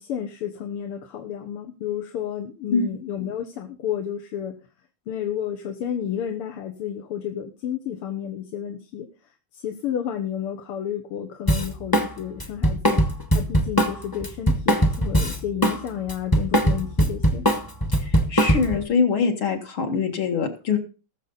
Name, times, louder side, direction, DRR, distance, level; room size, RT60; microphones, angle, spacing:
voice 1, 0.0-4.6 5.1-9.1 9.5-13.0 13.3-17.4, left 9 dB, 85° left, 5 dB, 2.0 m, -31 dB
Drum kit, 11.5-12.1 12.4-15.8 16.1-18.8, right 1 dB, 15° left, 0.9 m, -20 dB
voice 2, 18.0-20.8, left 5 dB, 70° left, 3 dB, 2.6 m, -23 dB
19.5 x 6.8 x 4.0 m, 0.33 s
omnidirectional pair, 2.4 m